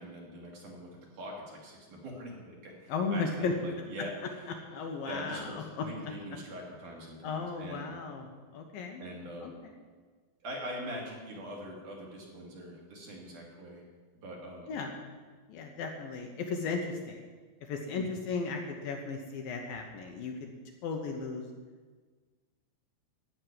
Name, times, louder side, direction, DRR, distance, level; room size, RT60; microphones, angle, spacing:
voice 1, 0.0-4.1 5.0-7.9 9.0-9.5 10.4-13.8 14.2-14.7 18.0-18.2, equal, 55° right, -2 dB, 3.8 m, -43 dB
voice 2, 2.9-3.5 4.7-5.9 7.2-9.0 9.4-9.7 14.7-15.0 15.5-17.2 17.6-20.5 20.8-21.5, left 4 dB, 70° left, 3 dB, 2.6 m, -35 dB
14.5 x 6.5 x 9.5 m, 1.5 s
omnidirectional pair, 4.8 m